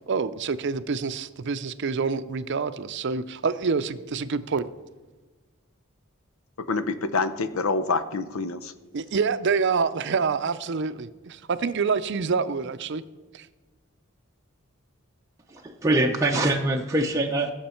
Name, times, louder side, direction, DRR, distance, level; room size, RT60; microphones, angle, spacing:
voice 1, 0.1-4.7 8.9-13.0 13.3-13.5, right 5 dB, 55° right, 13 dB, 0.5 m, -27 dB
voice 2, 6.7-8.7, left 4 dB, 80° left, 12 dB, 0.7 m, -26 dB
voice 3, 15.5-17.5, right 1 dB, 15° right, 0 dB, 0.6 m, -23 dB
17.0 x 7.2 x 4.4 m, 1.3 s
head